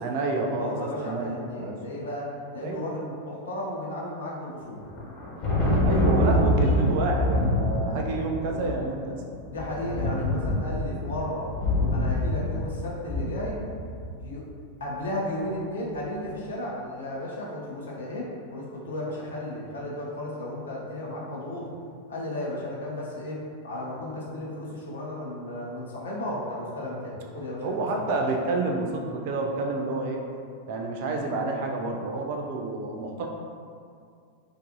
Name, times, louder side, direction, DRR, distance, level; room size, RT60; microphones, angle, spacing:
voice 1, 0.0-1.8 2.6-2.8 5.8-9.2 27.6-30.2 30.7-33.3, right 2 dB, 50° right, 1 dB, 0.3 m, -29 dB
voice 2, 0.6-4.9 9.5-11.5 11.9-13.6 14.2-14.4 14.8-21.7 22.1-27.9, left 1 dB, 65° left, -4 dB, 0.6 m, -34 dB
Thunder, 4.8-14.2, left 1 dB, 45° left, 1.0 m, -26 dB
2.5 x 2.4 x 2.6 m, 2.3 s
figure-of-eight pair, 90°, 0 cm